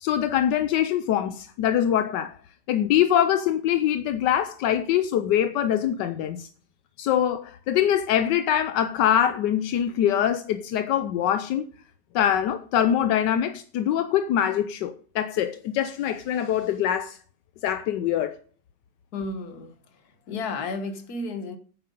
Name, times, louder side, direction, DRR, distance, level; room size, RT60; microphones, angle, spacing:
voice 1, 0.0-2.3 2.7-6.5 7.0-11.7 12.1-17.2 17.6-18.4, left 10 dB, 80° left, 1.3 m, -23 dB
voice 2, 19.1-21.6, left 3 dB, 60° left, 1.7 m, -33 dB
9.6 x 7.5 x 5.3 m
omnidirectional pair, 1.9 m